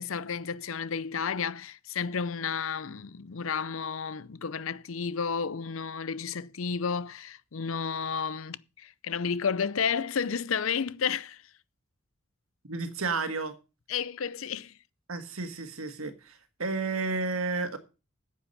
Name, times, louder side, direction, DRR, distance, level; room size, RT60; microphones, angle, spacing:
voice 1, 0.0-11.4 13.9-14.8, left 6 dB, 75° left, 0.6 m, -32 dB
voice 2, 12.7-13.5 15.1-17.8, right 4 dB, 85° right, 1.7 m, -32 dB
9.7 x 8.4 x 5.5 m
head